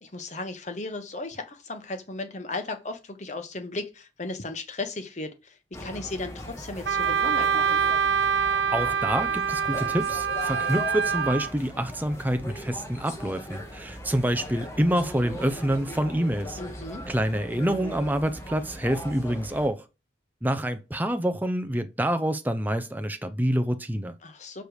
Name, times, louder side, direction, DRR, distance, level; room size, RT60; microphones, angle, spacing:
voice 1, 0.0-7.8 16.6-17.0 24.2-24.6, left 2 dB, 40° left, 1.0 m, -36 dB
sound 1, 5.7-19.7, equal, 15° left, 1.1 m, -39 dB
Wind instrument woodwind instrument, 6.9-11.5, right 7 dB, 60° right, 0.5 m, -25 dB
voice 2, 8.7-16.6 17.1-19.8 20.4-24.2, right 1 dB, 10° right, 0.5 m, -27 dB
7.9 x 3.3 x 6.4 m
head